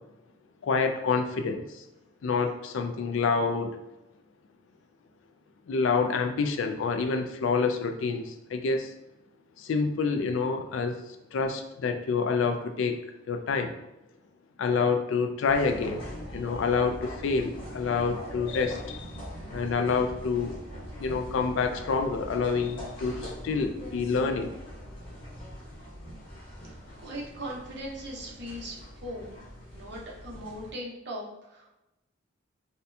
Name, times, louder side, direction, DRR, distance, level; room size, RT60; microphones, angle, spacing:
voice 1, 0.6-1.8 2.2-3.7 5.7-8.9 9.6-11.0 11.3-13.0 13.3-13.7 14.6-16.0 16.3-19.1 19.5-20.5 21.0-24.5, left 4 dB, 65° left, 6 dB, 0.3 m, -27 dB
sound 1, 15.5-30.7, equal, 25° left, 0.9 m, -42 dB
voice 2, 27.0-29.3 29.7-31.7, equal, 50° right, -3 dB, 0.8 m, -39 dB
4.1 x 2.2 x 2.6 m, 0.93 s
head